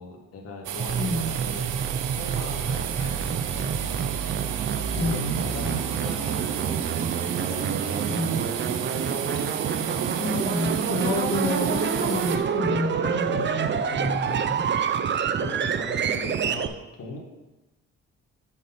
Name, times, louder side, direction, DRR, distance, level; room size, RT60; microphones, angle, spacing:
voice 1, 0.0-1.7 2.1-4.0 5.0-6.9 7.5-8.0 15.4-17.2, left 2 dB, 55° left, -2 dB, 2.0 m, -39 dB
sound 1, 0.6-12.4, right 9 dB, 85° right, 0.7 m, -33 dB
sound 2, 0.8-16.7, right 7 dB, 40° right, 0.5 m, -27 dB
voice 2, 0.9-1.3 5.0-6.0 8.1-8.4 9.6-9.7 10.1-14.7, left 1 dB, 75° left, -1 dB, 2.1 m, -30 dB
8.2 x 5.8 x 4.2 m, 1.0 s
cardioid pair, 90°, 30 cm